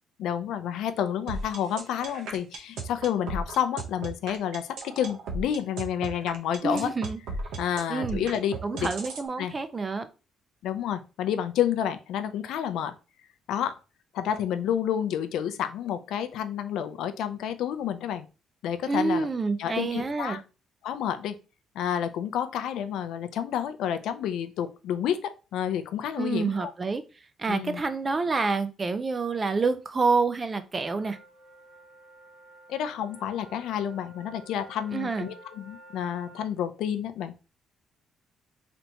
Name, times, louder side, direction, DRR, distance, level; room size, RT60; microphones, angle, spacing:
voice 1, 0.2-6.9 7.6-8.9 9.4-9.5 10.6-12.9 13.5-13.8 14.1-18.2 18.6-19.3 19.6-20.4 20.8-21.3 21.8-26.7 27.5-27.8 32.7-37.3, left 9 dB, 80° left, 0.4 m, -30 dB
sound 1, 1.3-9.3, right 3 dB, 75° right, 0.8 m, -35 dB
voice 2, 6.6-7.2 7.9-8.3 8.6-10.1 18.9-20.4 26.2-27.0 27.4-31.2 34.9-35.3, right 4 dB, 20° right, 0.4 m, -28 dB
sound 2, 30.9-36.5, right 1 dB, 15° left, 0.9 m, -52 dB
4.0 x 3.4 x 2.8 m
cardioid pair, 160°, 0 cm